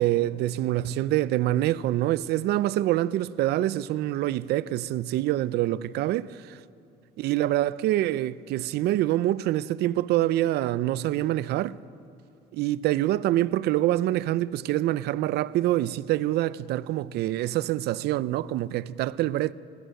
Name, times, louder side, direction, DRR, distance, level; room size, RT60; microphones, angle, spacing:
voice 1, 0.0-6.3 7.2-11.8 12.5-19.5, right 14 dB, 75° right, 0.5 m, -25 dB
20.0 x 15.0 x 9.1 m
cardioid pair, 110°, 17 cm